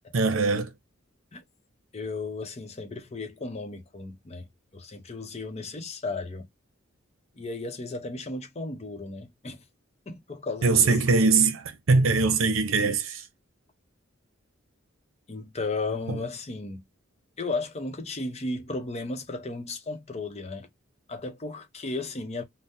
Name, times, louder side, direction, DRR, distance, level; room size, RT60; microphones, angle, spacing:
voice 1, 0.1-0.7 10.6-13.3 16.1-16.2, right 4 dB, 80° right, 0.7 m, -22 dB
voice 2, 1.9-6.5 7.4-9.6 10.1-10.9 15.3-16.8 17.4-20.7 21.1-22.4, left 3 dB, 35° left, 0.7 m, -34 dB
3.5 x 2.1 x 2.7 m
head